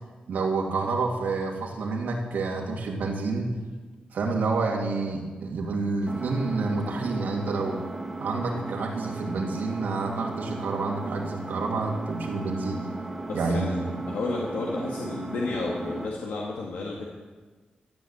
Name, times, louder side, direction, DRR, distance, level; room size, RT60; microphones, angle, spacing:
voice 1, 0.3-3.5 4.1-7.8 8.2-12.8 13.3-14.0, right 3 dB, 90° right, -1 dB, 2.6 m, -28 dB
Engine, 6.1-16.1, right 2 dB, 10° right, 1.6 m, -36 dB
voice 2, 13.3-13.7 14.1-17.1, left 3 dB, 90° left, -2 dB, 1.8 m, -31 dB
14.0 x 8.3 x 8.3 m, 1.4 s
wide cardioid pair, 145°, 3 cm